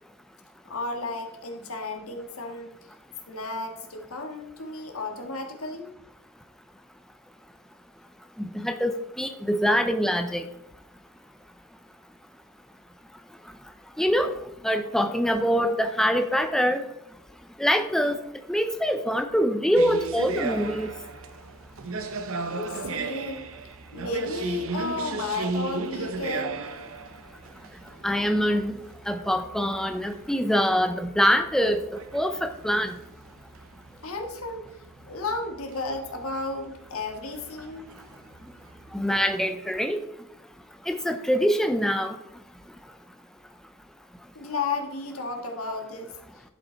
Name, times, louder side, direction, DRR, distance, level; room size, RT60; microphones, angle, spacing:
voice 1, 0.6-2.7 3.3-5.9 22.5-23.4 23.9-26.6 34.0-34.7 35.1-37.9 44.3-46.4, left 3 dB, 80° left, 3 dB, 1.6 m, -33 dB
voice 2, 8.4-10.5 14.0-14.3 14.6-16.8 17.6-18.2 18.5-20.9 28.0-28.7 29.1-31.8 32.1-32.9 38.9-40.0 40.9-42.2, equal, ahead, 7 dB, 0.5 m, -24 dB
sound 1, 19.7-39.4, right 3 dB, 70° right, 0.8 m, -36 dB
11.0 x 5.3 x 4.4 m, 0.87 s
head